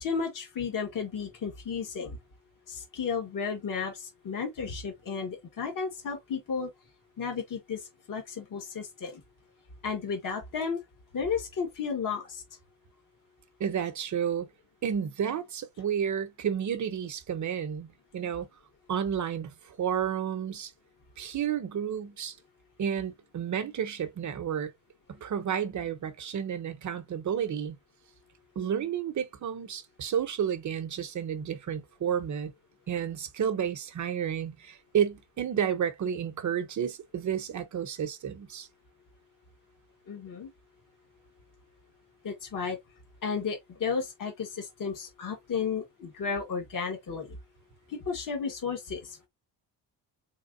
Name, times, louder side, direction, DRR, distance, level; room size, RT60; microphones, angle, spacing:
voice 1, 0.0-2.2 2.7-6.7 7.2-9.2 9.8-10.8 11.1-12.4 40.1-40.5 42.2-42.8 43.2-47.4 47.9-49.3, left 5 dB, 50° left, 1.9 m, -33 dB
voice 2, 13.6-14.5 14.8-17.9 18.1-18.5 18.9-20.7 21.2-22.3 22.8-24.7 25.1-27.8 28.6-32.5 32.9-38.7, right 8 dB, 45° right, 0.9 m, -31 dB
3.7 x 3.7 x 2.6 m
cardioid pair, 115°, 42 cm